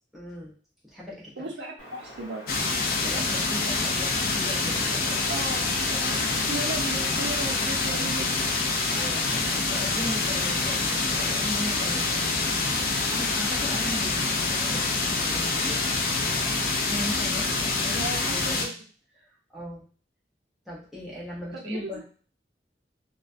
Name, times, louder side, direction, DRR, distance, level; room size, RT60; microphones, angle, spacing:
voice 1, 0.1-0.5 0.8-1.5 3.0-5.2 8.6-16.1 16.9-18.8 19.2-19.8 20.7-22.0, left 1 dB, ahead, -7 dB, 0.6 m, -38 dB
voice 2, 1.4-2.4 5.3-8.5 12.0-12.3 17.9-18.7 21.5-22.0, right 2 dB, 90° right, 0 dB, 0.6 m, -36 dB
Wind, 1.8-16.6, equal, 75° left, 0.8 m, -44 dB
sound 1, 2.5-18.7, left 3 dB, 55° left, 0.4 m, -26 dB
2.2 x 2.1 x 2.5 m, 0.41 s
head